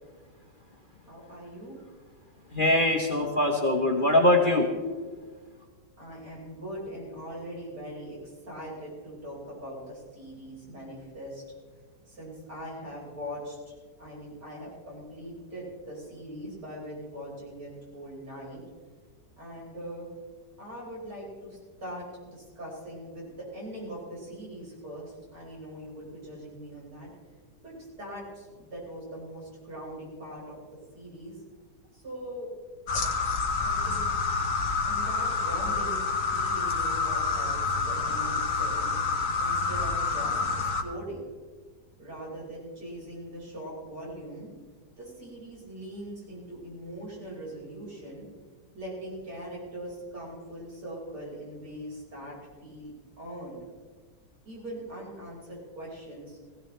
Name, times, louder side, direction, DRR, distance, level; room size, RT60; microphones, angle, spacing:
voice 1, 1.1-1.8 6.0-11.4 12.1-18.6 19.4-20.1 20.6-27.1 27.6-30.6 30.9-31.4 31.9-32.5 33.5-34.1 34.8-38.9 39.4-41.3 42.0-44.5 45.0-48.3 48.7-53.6 54.4-56.4, equal, 75° right, -5 dB, 5.9 m, -41 dB
voice 2, 2.5-4.7, left 1 dB, 35° left, 1 dB, 1.2 m, -22 dB
sound 1, 32.9-40.8, left 4 dB, 55° left, 1.3 m, -28 dB
16.5 x 16.0 x 3.3 m, 1.4 s
omnidirectional pair, 1.8 m